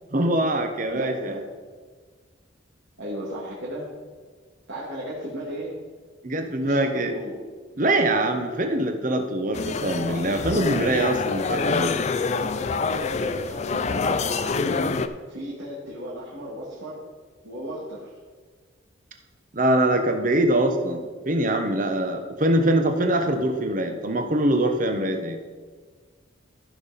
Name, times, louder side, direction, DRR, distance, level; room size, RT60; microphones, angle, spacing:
voice 1, 0.1-1.4 6.2-7.1 7.8-12.0 19.5-25.4, right 1 dB, 40° right, 5 dB, 0.9 m, -23 dB
voice 2, 0.9-1.4 3.0-3.9 4.7-5.8 6.6-7.4 12.4-15.0 15.3-17.0 17.4-18.1, equal, 75° right, -7 dB, 2.2 m, -35 dB
sound 1, 9.5-15.1, left 4 dB, 35° left, 0.4 m, -26 dB
14.5 x 5.7 x 4.1 m, 1.5 s
head